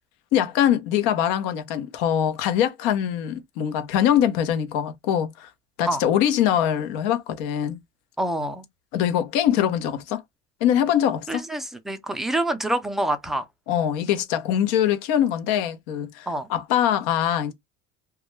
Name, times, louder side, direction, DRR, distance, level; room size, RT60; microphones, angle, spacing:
voice 1, 0.3-5.5 5.8-7.8 8.9-10.2 10.6-11.4 13.7-17.5, left 10 dB, 80° left, 0.8 m, -23 dB
voice 2, 8.2-8.6 11.3-13.4 16.3-16.5, right 1 dB, ahead, 0.3 m, -26 dB
2.3 x 2.2 x 3.0 m
cardioid pair, 130°, 33 cm